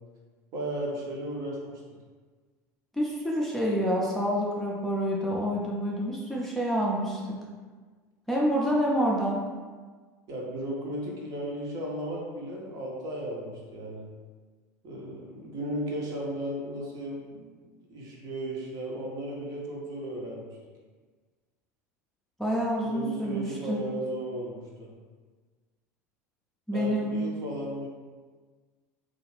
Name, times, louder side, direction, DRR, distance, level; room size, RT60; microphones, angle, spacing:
voice 1, 0.5-1.8 10.3-14.0 14.8-20.5 22.8-24.9 26.7-27.9, right 1 dB, 40° right, -2 dB, 0.7 m, -35 dB
voice 2, 2.9-7.4 8.3-9.4 22.4-23.8 26.7-27.1, equal, 5° left, -5 dB, 0.4 m, -27 dB
2.4 x 2.4 x 3.2 m, 1.4 s
figure-of-eight pair, 75°, 9 cm